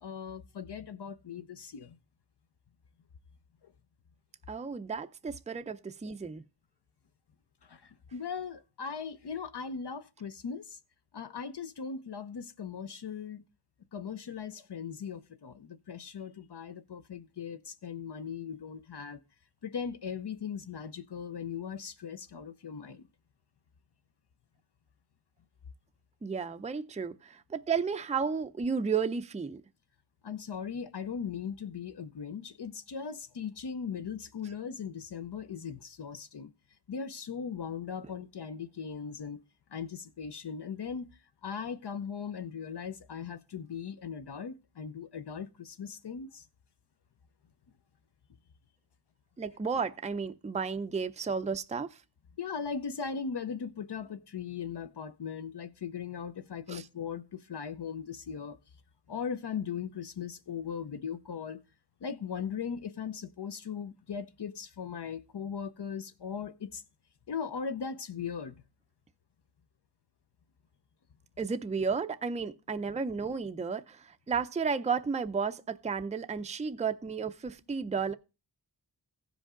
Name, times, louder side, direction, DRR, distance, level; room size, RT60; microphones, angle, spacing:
voice 1, 0.0-2.0 3.6-3.7 7.6-10.8 11.1-13.4 13.9-19.2 19.6-23.1 30.2-36.5 36.9-39.4 39.7-41.1 41.4-46.4 52.4-58.6 59.1-61.6 62.0-66.8 67.3-68.6, left 6 dB, 65° left, 0.7 m, -39 dB
voice 2, 4.5-6.4 26.2-29.6 49.4-51.9 56.7-56.9 71.4-78.1, right 5 dB, 15° right, 0.4 m, -33 dB
15.5 x 5.2 x 3.7 m
wide cardioid pair, 60°, 44 cm